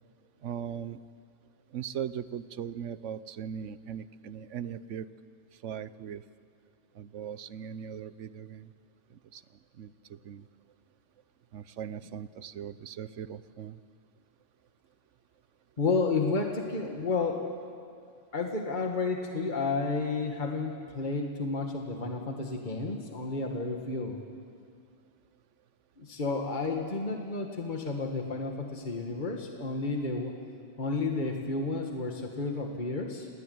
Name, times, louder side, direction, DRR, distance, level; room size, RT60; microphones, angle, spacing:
voice 1, 0.4-1.0 1.7-5.1 5.6-6.2 6.9-8.7 9.1-9.4 9.7-10.5 11.5-13.8, right 8 dB, 75° right, 15 dB, 1.1 m, -39 dB
voice 2, 15.8-17.5 18.3-24.2 26.0-30.3 30.8-33.3, left 3 dB, 40° left, 2 dB, 2.0 m, -31 dB
27.5 x 20.0 x 9.5 m, 2.3 s
omnidirectional pair, 1.3 m